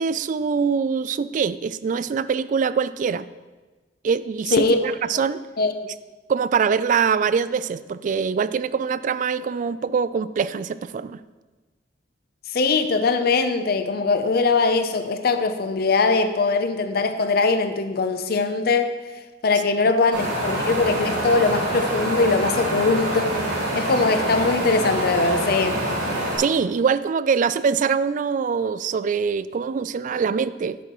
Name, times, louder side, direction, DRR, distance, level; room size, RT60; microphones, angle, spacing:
voice 1, 0.0-3.3 4.0-5.4 6.3-11.2 26.4-30.8, right 6 dB, 45° right, 16 dB, 0.3 m, -23 dB
voice 2, 12.5-18.9 19.4-23.4 23.8-25.8, left 3 dB, 60° left, 8 dB, 0.6 m, -21 dB
Wind, 20.1-26.4, right 1 dB, 80° right, 3.1 m, -26 dB
10.5 x 8.4 x 3.0 m, 1.2 s
head